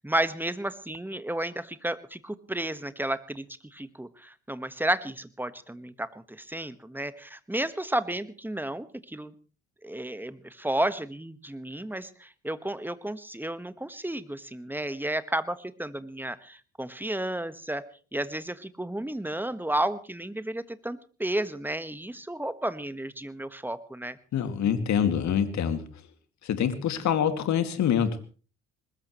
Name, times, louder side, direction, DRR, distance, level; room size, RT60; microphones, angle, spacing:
voice 1, 0.0-3.4 3.7-9.3 9.8-17.8 18.1-24.2, right 1 dB, 5° right, 13 dB, 1.4 m, -32 dB
voice 2, 24.3-26.0 26.4-28.3, left 8 dB, 60° left, 9 dB, 2.3 m, -26 dB
21.0 x 20.0 x 3.1 m, 0.38 s
hypercardioid pair, 50°, 32 cm